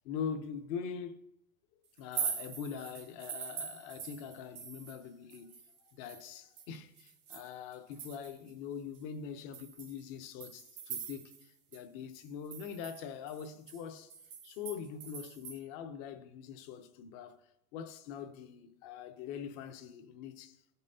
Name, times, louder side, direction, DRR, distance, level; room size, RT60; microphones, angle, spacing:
voice 1, 0.0-1.2 2.0-5.5 5.9-14.1 14.4-20.6, left 7 dB, 30° left, 0.5 m, -43 dB
sound 1, 2.0-5.0 5.3-8.5 8.9-9.0 9.5-11.5 11.7-11.8 12.2-15.6, right 7 dB, 70° right, 1.7 m, -43 dB
15.0 x 5.5 x 2.7 m
supercardioid pair, 155°, 44 cm